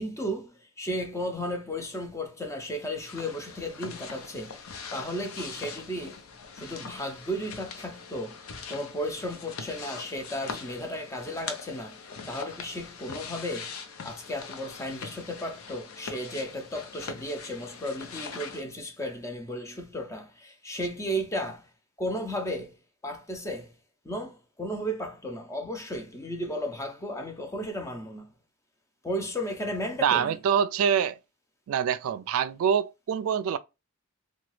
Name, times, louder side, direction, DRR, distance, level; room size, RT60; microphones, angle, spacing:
voice 1, 0.0-6.2 6.5-8.4 8.7-13.8 14.0-21.7 22.0-22.7 23.0-23.8 24.0-28.3 29.0-30.4, equal, 15° left, 0.5 m, -34 dB
sound 1, 3.0-18.6, left 5 dB, 80° left, 0.6 m, -42 dB
voice 2, 30.0-31.2 31.7-33.6, right 8 dB, 75° right, 0.3 m, -25 dB
2.9 x 2.3 x 3.1 m
head